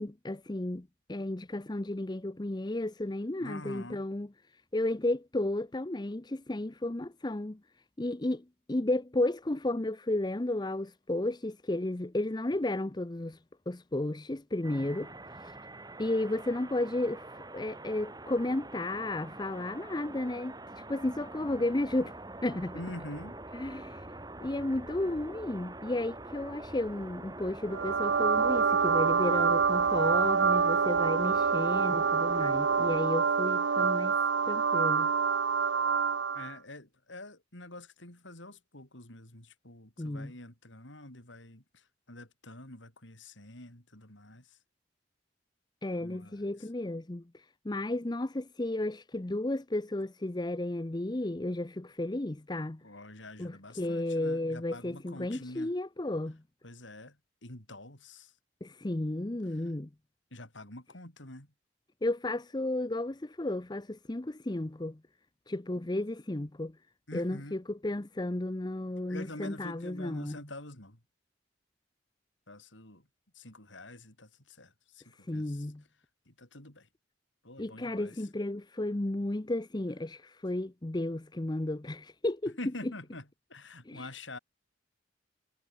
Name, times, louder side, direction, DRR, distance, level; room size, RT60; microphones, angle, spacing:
voice 1, 0.0-4.3 4.7-7.6 8.0-13.4 13.7-15.1 16.0-20.5 20.9-22.1 22.4-22.7 23.5-24.1 24.4-34.2 34.5-35.1 40.0-40.3 45.8-47.2 47.6-52.8 53.4-56.4 58.6-59.9 62.0-65.0 65.5-66.7 67.1-70.4 75.3-75.8 77.6-82.6 83.9-84.1, left 1 dB, 20° left, 0.7 m, -33 dB
voice 2, 3.4-4.1 22.7-23.4 36.3-44.6 46.0-46.7 52.8-55.7 56.6-57.2 57.4-58.3 59.5-59.7 60.3-61.5 67.1-67.6 69.1-71.0 72.5-73.1 73.3-75.7 76.3-76.9 77.4-78.2 82.6-84.4, left 1 dB, 80° left, 7.7 m, -46 dB
sound 1, 14.6-33.1, right 2 dB, 20° right, 4.4 m, -46 dB
sound 2, 27.7-36.5, right 6 dB, 75° right, 0.7 m, -26 dB
head